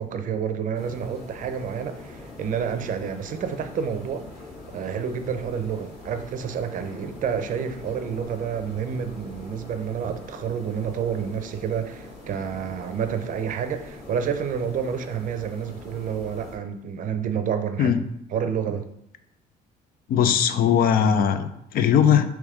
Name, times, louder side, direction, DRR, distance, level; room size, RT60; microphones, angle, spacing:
voice 1, 0.0-4.2 4.7-18.9, right 7 dB, 50° right, 8 dB, 0.5 m, -29 dB
sound 1, 0.7-16.6, left 2 dB, 80° left, 1.8 m, -43 dB
voice 2, 20.1-22.4, left 8 dB, 60° left, 10 dB, 0.4 m, -20 dB
3.4 x 3.1 x 4.8 m, 0.81 s
cardioid pair, 110°, 17 cm